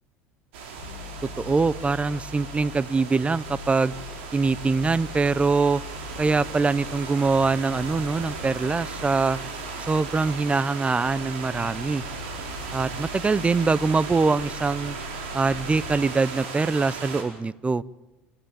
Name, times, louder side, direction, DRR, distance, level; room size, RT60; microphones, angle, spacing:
sound 1, 0.5-17.2, right 5 dB, 80° right, 4.9 m, -37 dB
sound 2, 0.8-3.0 3.4-10.6 11.1-16.1, left 7 dB, 85° left, 2.2 m, -42 dB
voice 1, 1.4-3.9 4.3-5.8 6.2-9.4 9.9-12.0 12.7-15.0 15.3-17.8, right 4 dB, 20° right, 21 dB, 0.7 m, -23 dB
29.5 x 13.0 x 8.9 m, 0.98 s
hypercardioid pair, 80°, 6 cm